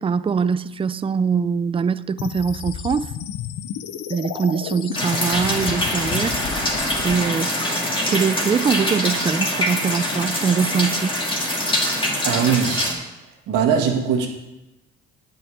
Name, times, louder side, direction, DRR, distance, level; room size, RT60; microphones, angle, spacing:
voice 1, 0.0-3.1 4.1-6.4 7.0-7.8 8.1-11.1, right 6 dB, 20° right, 0.4 m, -23 dB
sound 1, 2.2-7.1, left 9 dB, 80° left, 0.8 m, -32 dB
sound 2, 4.9-12.9, left 1 dB, 15° left, 2.6 m, -24 dB
voice 2, 12.2-13.0 13.5-14.3, right 7 dB, 85° right, 1.8 m, -20 dB
9.6 x 5.8 x 8.4 m
cardioid pair, 90°, 30 cm